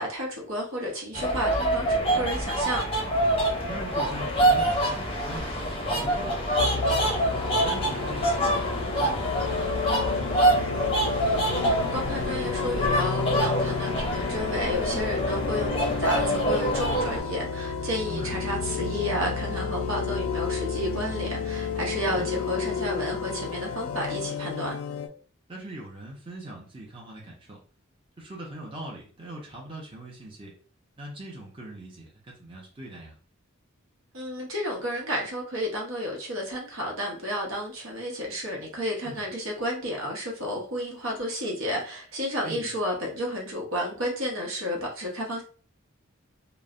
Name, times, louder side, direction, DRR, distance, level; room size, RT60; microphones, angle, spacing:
voice 1, 0.0-2.8 11.6-24.8 34.1-45.4, equal, 70° right, -1 dB, 0.9 m, -31 dB
sound 1, 1.1-17.2, right 1 dB, 25° left, 0.6 m, -26 dB
voice 2, 3.7-6.7 7.6-10.7 18.1-18.4 22.0-22.3 25.5-27.6 28.2-30.5 31.0-33.2 39.0-39.2 42.4-42.7, right 1 dB, 25° right, -3 dB, 0.6 m, -41 dB
sound 2, 6.6-25.1, left 6 dB, 85° left, 0.4 m, -31 dB
3.1 x 2.1 x 2.4 m, 0.41 s
head